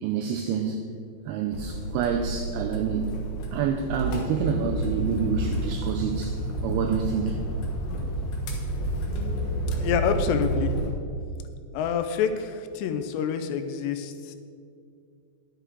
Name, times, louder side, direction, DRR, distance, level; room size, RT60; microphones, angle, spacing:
voice 1, 0.0-0.8 1.3-3.2 3.5-6.4 6.6-7.4, right 7 dB, 85° right, 4 dB, 2.2 m, -28 dB
sound 1, 1.5-10.9, right 1 dB, 65° left, 2.1 m, -30 dB
voice 2, 9.8-10.7 11.7-14.4, left 7 dB, 80° left, 8 dB, 2.7 m, -27 dB
10.5 x 8.0 x 4.6 m, 2.4 s
omnidirectional pair, 5.1 m